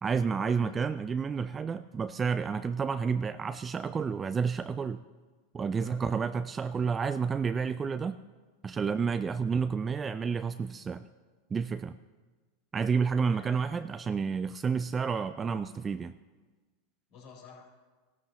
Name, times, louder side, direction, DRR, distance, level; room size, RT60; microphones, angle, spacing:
voice 1, 0.0-5.0 5.5-8.2 8.6-11.1 11.5-12.0 12.7-16.1, right 5 dB, 20° right, 12 dB, 0.3 m, -30 dB
voice 2, 13.3-13.8 17.1-17.7, left 7 dB, 55° left, -2 dB, 4.1 m, -50 dB
15.5 x 12.0 x 3.0 m, 1.3 s
hypercardioid pair, 100°, 0 cm